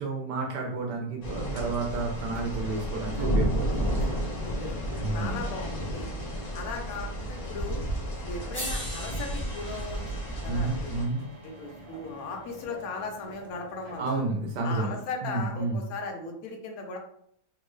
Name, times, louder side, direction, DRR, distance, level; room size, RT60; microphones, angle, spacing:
voice 1, 0.0-4.1 5.0-5.4 10.5-11.2 14.0-14.9 15.2-15.8, right 3 dB, 85° right, 0 dB, 1.2 m, -31 dB
sound 1, 1.2-11.0, equal, 85° left, 0.3 m, -32 dB
sound 2, 1.8-14.2, right 1 dB, 55° right, 0.4 m, -48 dB
voice 2, 4.4-4.8 5.1-6.1 6.5-7.8 8.2-10.0 10.4-11.0 11.4-14.2 14.6-17.0, left 4 dB, 65° left, 2 dB, 1.1 m, -37 dB
sound 3, 7.9-8.0 8.5-12.7 14.1-14.2, equal, 10° left, 1.0 m, -42 dB
3.6 x 2.2 x 3.1 m, 0.68 s
omnidirectional pair, 1.8 m